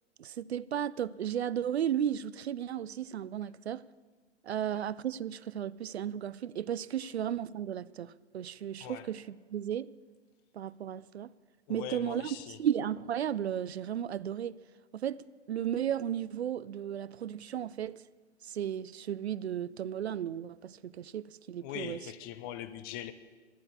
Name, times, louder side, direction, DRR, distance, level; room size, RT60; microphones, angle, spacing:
voice 1, 0.2-3.8 4.4-9.9 10.5-11.3 11.7-14.6 14.9-18.0 18.4-22.0, right 9 dB, 65° right, 0.5 m, -34 dB
voice 2, 11.7-12.6 21.6-23.1, left 11 dB, 20° left, 0.5 m, -41 dB
12.0 x 11.0 x 7.3 m
figure-of-eight pair, 110°, 35 cm